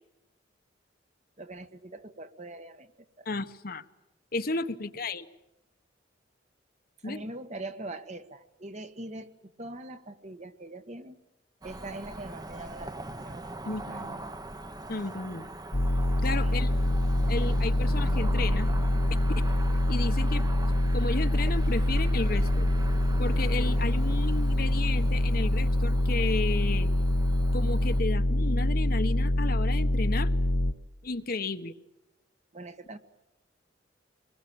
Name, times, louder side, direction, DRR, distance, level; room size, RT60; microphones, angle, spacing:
voice 1, 1.4-2.9 3.2-3.3 4.7-4.9 7.0-11.2 11.6-13.5 13.8-14.0 16.4-16.6 32.5-33.0, right 2 dB, 40° right, 9 dB, 1.5 m, -42 dB
voice 2, 3.2-3.8 4.3-5.3 7.0-7.2 13.7-14.2 14.9-15.5 16.2-16.7 17.3-18.7 19.1-19.4 19.9-20.5 20.9-22.7 23.2-26.9 27.5-30.3 31.0-31.7, left 3 dB, 50° left, 10 dB, 1.2 m, -33 dB
Cricket / Motor vehicle (road), 11.6-28.0, right 1 dB, 20° right, 1.1 m, -40 dB
sound 1, 15.7-30.7, left 1 dB, 70° left, 1.2 m, -25 dB
25.0 x 21.5 x 8.8 m, 0.99 s
head